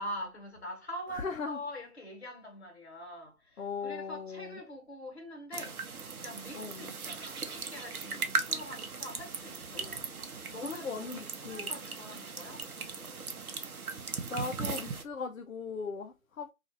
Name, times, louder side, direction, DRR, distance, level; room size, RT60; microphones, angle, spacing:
voice 1, 0.0-10.1 10.5-13.2, equal, 50° left, 1.2 m, -44 dB
voice 2, 1.1-1.6 3.6-4.6 6.5-6.9 9.7-10.0 10.6-11.7 14.3-16.5, left 5 dB, 70° left, 0.6 m, -38 dB
sound 1, 5.5-15.0, right 4 dB, 85° right, 0.7 m, -38 dB
2.6 x 2.4 x 2.7 m
figure-of-eight pair, 175°, 42 cm